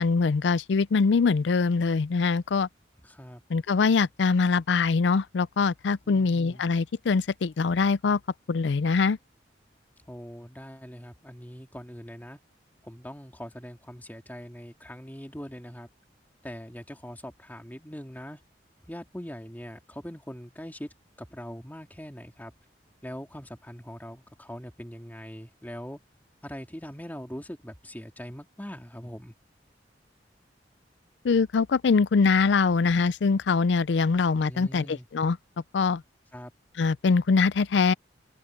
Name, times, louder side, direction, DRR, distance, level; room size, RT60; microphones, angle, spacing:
voice 1, 0.0-2.7 3.5-8.2 8.5-9.2 31.2-35.4 35.7-36.0 36.8-37.9, left 4 dB, 75° left, 0.4 m, -23 dB
voice 2, 3.0-3.4 6.0-6.6 10.1-12.4 12.8-15.9 16.4-18.4 18.9-20.9 21.2-22.5 23.0-26.0 26.4-29.3 34.5-35.1 36.3-36.5, equal, 10° left, 2.8 m, -42 dB
open air
head